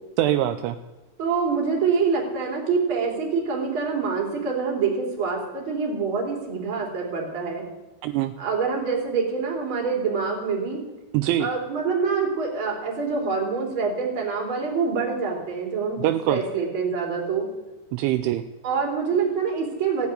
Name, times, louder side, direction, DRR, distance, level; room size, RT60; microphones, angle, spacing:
voice 1, 0.2-0.8 8.0-8.3 11.1-11.5 16.0-16.4 17.9-18.4, right 13 dB, 80° right, 8 dB, 2.9 m, -23 dB
voice 2, 1.2-7.6 8.4-10.8 11.4-17.4 18.6-20.1, right 5 dB, 30° right, -1 dB, 3.5 m, -26 dB
16.5 x 7.1 x 9.7 m, 1.1 s
omnidirectional pair, 5.6 m